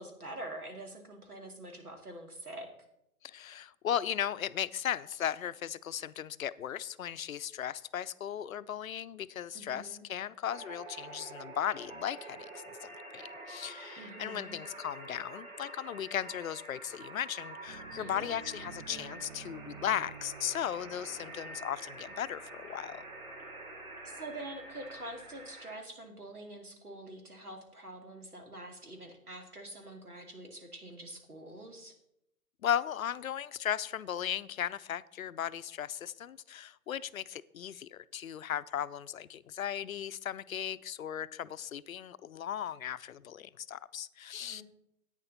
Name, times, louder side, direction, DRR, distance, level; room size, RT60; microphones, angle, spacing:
voice 1, 0.0-2.7 9.5-10.0 13.9-14.6 18.0-18.2 24.0-31.9 44.4-44.6, right 1 dB, 90° right, 4 dB, 2.4 m, -45 dB
voice 2, 3.2-23.0 32.6-44.6, left 9 dB, 70° left, 15 dB, 0.6 m, -36 dB
sound 1, 10.5-25.8, right 2 dB, 65° right, 3.6 m, -47 dB
sound 2, 17.6-25.5, right 6 dB, 40° right, 0.8 m, -53 dB
11.0 x 8.8 x 4.0 m, 0.80 s
figure-of-eight pair, 125°, 43 cm